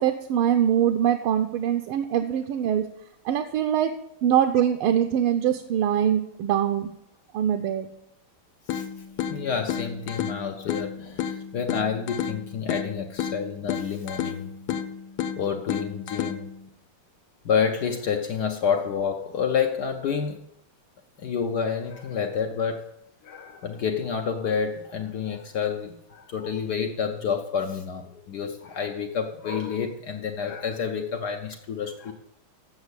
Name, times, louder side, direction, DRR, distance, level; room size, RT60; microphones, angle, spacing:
voice 1, 0.0-2.8 3.2-3.9 4.2-6.9 7.3-7.9, right 9 dB, 80° right, 7 dB, 1.5 m, -23 dB
sound 1, 8.7-16.7, left 9 dB, 85° left, 1.6 m, -32 dB
voice 2, 9.3-14.8 15.4-16.5 17.4-20.5 21.2-22.9 23.2-32.1, left 6 dB, 65° left, 4 dB, 1.1 m, -29 dB
8.1 x 6.7 x 8.1 m, 0.78 s
omnidirectional pair, 2.4 m